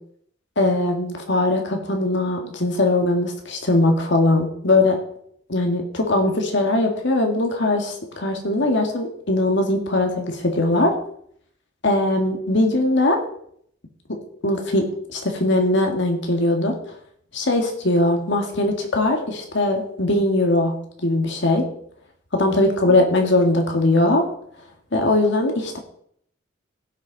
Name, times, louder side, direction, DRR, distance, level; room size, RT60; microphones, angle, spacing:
voice 1, 0.6-5.0 5.5-10.9 11.8-13.2 14.4-16.8 17.3-20.7 21.0-21.6 22.3-24.2 24.9-25.8, left 2 dB, 60° left, 3 dB, 2.0 m, -20 dB
16.5 x 6.3 x 4.1 m, 0.67 s
head